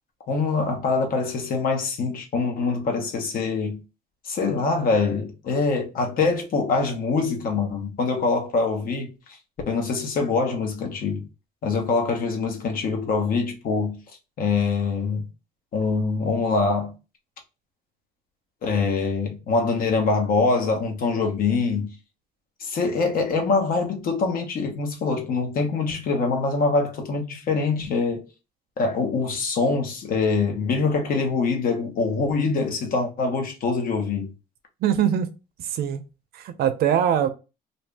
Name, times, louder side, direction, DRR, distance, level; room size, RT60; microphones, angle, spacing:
voice 1, 0.3-3.8 4.2-9.1 9.7-11.3 11.6-14.0 14.4-15.2 15.7-16.9 18.6-21.9 22.6-28.2 28.8-34.3, left 4 dB, 55° left, 1.1 m, -24 dB
voice 2, 34.8-35.3 35.6-36.0 36.3-37.3, right 9 dB, 70° right, 0.6 m, -22 dB
2.7 x 2.7 x 3.4 m
cardioid pair, 110°, 17 cm